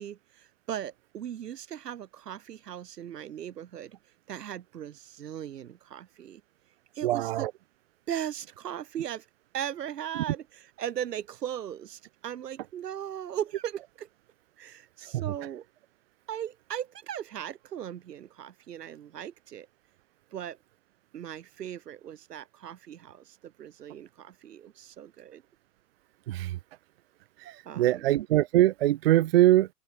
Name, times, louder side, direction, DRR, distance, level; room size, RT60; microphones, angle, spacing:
voice 1, 0.0-4.0 4.3-6.4 6.9-7.5 8.1-9.3 9.5-14.1 14.6-15.6 16.3-19.7 20.3-20.6 21.1-25.4 27.4-28.1, right 10 dB, 70° right, 1.6 m, -38 dB
voice 2, 7.0-7.5 15.1-15.2 26.3-26.6 27.5-29.7, right 14 dB, 35° right, 0.7 m, -23 dB
open air
hypercardioid pair, 135°, 50 cm